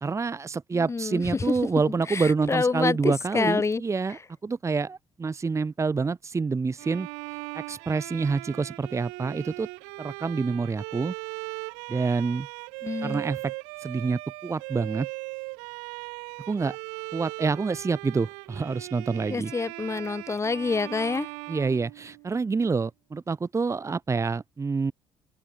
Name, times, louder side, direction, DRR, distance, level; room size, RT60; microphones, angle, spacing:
voice 1, 0.0-7.1 7.5-9.7 10.0-11.1 11.9-12.5 13.0-13.5 13.8-15.1 16.5-16.8 17.1-19.5 21.5-24.9, right 4 dB, 30° right, 1.0 m, -27 dB
voice 2, 0.7-1.5 2.1-3.8 12.8-13.2 19.3-21.3, left 4 dB, 25° left, 1.1 m, -27 dB
Bowed string instrument, 6.8-22.5, right 40 dB or more, 80° right, 1.7 m, -39 dB
open air
hypercardioid pair, 50°, 11 cm